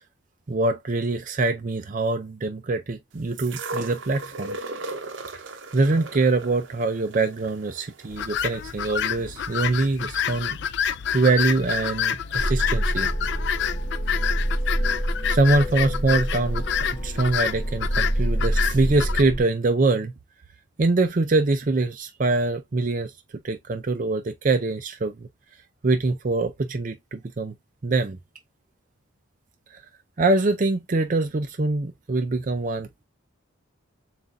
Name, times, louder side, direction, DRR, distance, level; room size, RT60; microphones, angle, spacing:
voice 1, 0.5-4.6 5.7-10.6 11.1-13.1 15.0-16.6 17.0-20.1 20.8-23.1 23.4-25.1 25.8-27.5 27.8-28.2 30.2-33.0, right 3 dB, 40° right, 0.4 m, -24 dB
sound 1, 3.4-9.4 10.3-10.4, right 3 dB, 60° right, 0.8 m, -37 dB
sound 2, 8.1-19.2, left 8 dB, 55° left, 0.3 m, -28 dB
sound 3, 12.4-19.4, right 1 dB, 15° left, 1.3 m, -27 dB
7.3 x 2.5 x 2.5 m
head